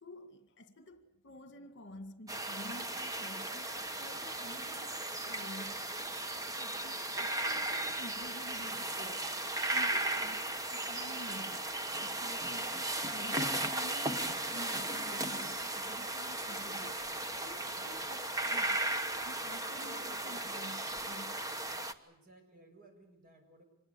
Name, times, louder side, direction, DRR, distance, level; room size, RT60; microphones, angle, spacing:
voice 1, 0.0-6.1 6.5-9.4 9.7-11.7 12.0-12.8 13.1-17.1 17.4-18.2 18.5-18.9 19.2-21.5, left 1 dB, 55° left, 2.1 m, -50 dB
sound 1, 2.3-21.9, right 2 dB, 15° right, 1.2 m, -36 dB
voice 2, 17.7-18.1 19.8-20.3 22.0-23.6, right 1 dB, 40° right, 6.7 m, -56 dB
26.0 x 21.5 x 8.4 m
head